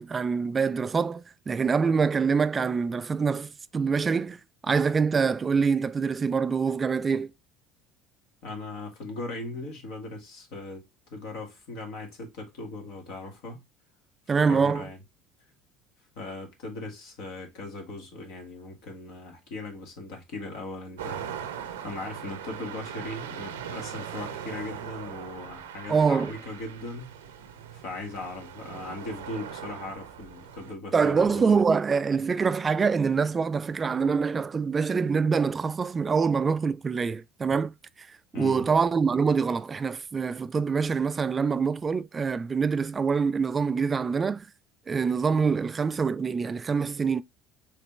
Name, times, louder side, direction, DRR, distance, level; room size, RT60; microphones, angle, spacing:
voice 1, 0.0-7.3 14.3-14.9 25.9-26.3 30.9-37.7 38.0-44.5 44.9-47.2, right 5 dB, 30° right, 0.3 m, -25 dB
voice 2, 8.4-13.6 14.5-15.0 16.2-21.2 21.6-27.1 27.7-31.6 38.3-38.7, left 2 dB, 70° left, 1.8 m, -39 dB
sound 1, 21.0-30.7, right 8 dB, 85° right, 0.7 m, -40 dB
5.0 x 3.1 x 3.2 m
hypercardioid pair, 70°, 0 cm